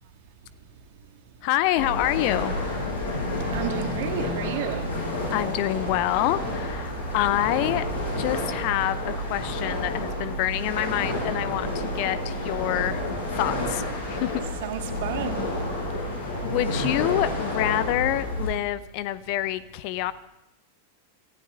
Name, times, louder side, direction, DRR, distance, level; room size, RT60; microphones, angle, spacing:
voice 1, 1.4-2.5 5.3-7.9 8.2-13.0 13.3-14.3 16.4-20.1, left 14 dB, 45° left, 0.6 m, -27 dB
sound 1, 1.8-18.5, left 1 dB, 75° left, 7.0 m, -30 dB
voice 2, 3.5-4.9 14.6-15.5, right 11 dB, 50° right, 1.8 m, -32 dB
26.0 x 15.0 x 3.7 m
figure-of-eight pair, 90°, 0 cm